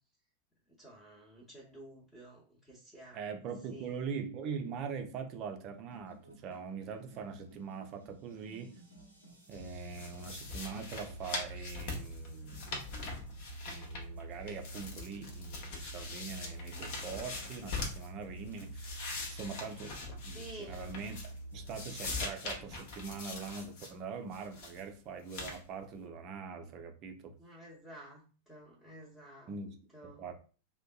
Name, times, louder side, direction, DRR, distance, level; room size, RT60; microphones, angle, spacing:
voice 1, 0.8-3.2 3.7-3.9 20.3-20.8 27.4-29.5 29.9-30.3, right 1 dB, 10° left, -6 dB, 0.8 m, -51 dB
voice 2, 3.1-8.8 9.5-12.7 13.7-21.2 21.5-27.3 29.5-29.8 30.0-30.3, right 5 dB, 35° right, 5 dB, 0.4 m, -42 dB
sound 1, 5.7-22.3, right 2 dB, 85° left, 0.9 m, -48 dB
sound 2, 9.9-14.2 14.5-18.1 18.5-21.4 21.7-23.9 24.3-24.8 25.3-25.6, left 3 dB, 50° left, 0.7 m, -42 dB
2.5 x 2.2 x 2.3 m, 0.38 s
figure-of-eight pair, 90°, 0 cm